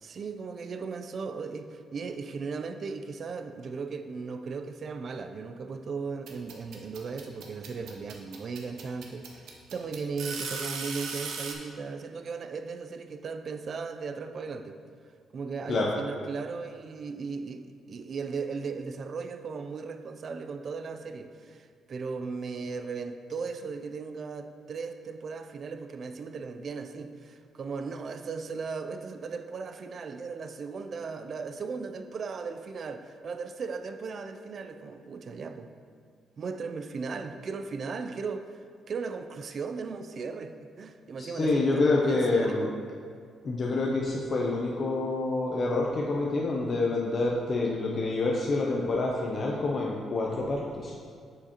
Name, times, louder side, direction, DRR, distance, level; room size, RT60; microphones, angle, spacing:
voice 1, 0.0-14.8 15.3-35.7 36.4-38.5 38.9-42.7, right 4 dB, 35° right, 8 dB, 0.3 m, -37 dB
sound 1, 6.3-11.5, right 5 dB, 75° right, 0.8 m, -37 dB
voice 2, 41.2-42.7 43.4-50.9, left 2 dB, 30° left, -2 dB, 0.5 m, -27 dB
7.3 x 6.5 x 2.9 m, 2.2 s
cardioid pair, 180°, 0 cm